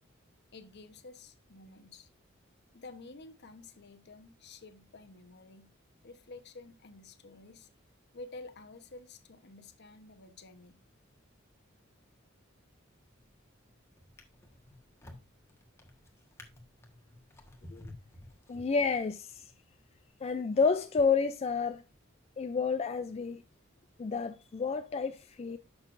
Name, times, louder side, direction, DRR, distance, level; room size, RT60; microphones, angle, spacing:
voice 1, 0.5-2.1 2.7-5.7 6.0-7.7 8.1-10.8, left 3 dB, 55° left, 1.0 m, -50 dB
Drawer open or close, 13.1-13.4 14.0-19.2 19.9-20.0, left 1 dB, 15° left, 1.4 m, -53 dB
voice 2, 18.5-19.5 20.2-21.8 22.4-23.4 24.0-25.6, left 5 dB, 30° left, 0.3 m, -30 dB
11.0 x 6.4 x 2.5 m
head